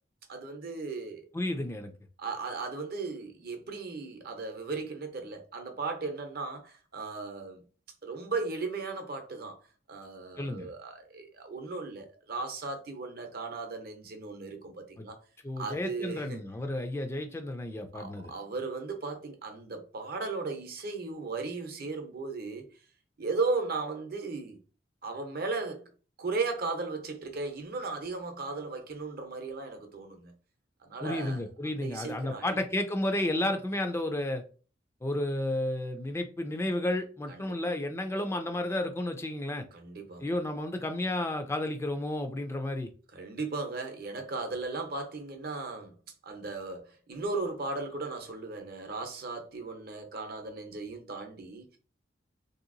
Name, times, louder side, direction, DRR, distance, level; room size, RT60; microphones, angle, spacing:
voice 1, 0.3-1.3 2.2-7.6 8.0-9.6 9.9-15.2 15.6-16.4 17.9-22.7 23.2-24.6 25.0-25.9 26.2-30.3 30.8-31.4 31.7-32.6 37.3-37.6 39.7-40.3 43.1-45.9 46.2-51.6, right 3 dB, 55° right, 0.7 m, -36 dB
voice 2, 1.3-1.9 10.4-10.7 15.0-15.1 15.4-18.3 31.0-34.4 35.0-39.6 40.2-42.9, left 1 dB, 15° left, 0.3 m, -32 dB
3.3 x 2.8 x 2.5 m
head